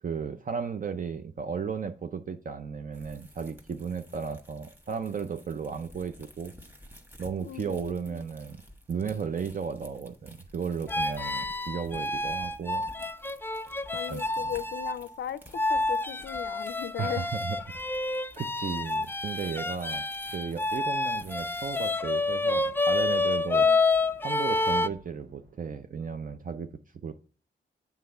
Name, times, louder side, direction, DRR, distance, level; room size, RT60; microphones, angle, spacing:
voice 1, 0.0-6.5 7.2-8.6 8.9-12.9 14.1-14.5 17.0-17.6 17.8-18.0 18.4-20.0 20.3-23.7 24.2-26.7 27.0-27.2, right 6 dB, 45° right, 0.5 m, -35 dB
sound 1, 2.9-21.9, equal, 10° right, 1.3 m, -53 dB
voice 2, 7.4-8.2 13.9-15.4 15.7-17.3 23.6-23.8, left 10 dB, 70° left, 0.5 m, -37 dB
sound 2, 10.9-15.0 15.5-24.9, left 3 dB, 10° left, 0.3 m, -28 dB
sound 3, 20.4-25.8, right 2 dB, 85° right, 1.9 m, -57 dB
7.4 x 3.5 x 5.5 m
cardioid pair, 65°, 19 cm